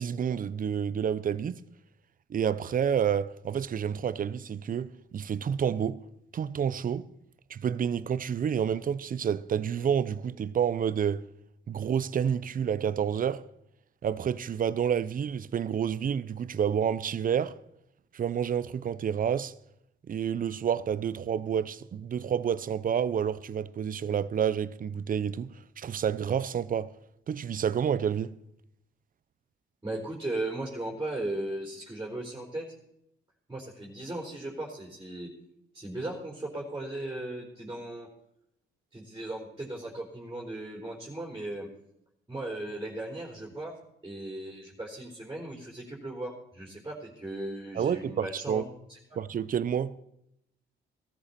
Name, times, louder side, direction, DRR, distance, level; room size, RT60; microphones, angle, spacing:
voice 1, 0.0-1.6 2.3-6.0 6.3-7.1 7.5-11.2 11.7-13.4 14.0-17.6 18.1-19.5 20.1-26.9 27.3-28.3 47.8-48.6 49.2-49.9, right 8 dB, 45° right, 0.7 m, -29 dB
voice 2, 29.8-32.6 33.5-35.3 35.7-38.1 38.9-41.7 42.3-43.8 44.0-48.6 48.9-49.2, right 1 dB, 15° right, 4.1 m, -37 dB
17.5 x 13.5 x 4.3 m
cardioid pair, 90°, 20 cm